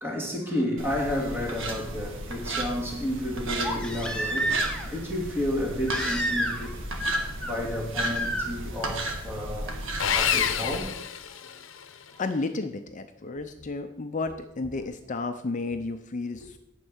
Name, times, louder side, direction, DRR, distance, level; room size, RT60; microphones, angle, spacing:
voice 1, 0.0-4.6 4.8-6.8 7.4-9.8 10.1-10.9, left 1 dB, 10° right, 2.3 m, -31 dB
Knife Carve Wood, 0.8-10.8, right 2 dB, 75° right, 1.7 m, -34 dB
Crying sobbing, 3.6-5.0 5.9-6.7 7.0-7.5 8.1-8.5 10.1-10.2, right 1 dB, 5° left, 1.3 m, -29 dB
Sawing, 10.0-11.9, left 8 dB, 75° left, 0.7 m, -27 dB
voice 2, 12.2-16.6, left 3 dB, 40° left, 0.5 m, -32 dB
11.5 x 4.6 x 8.0 m
head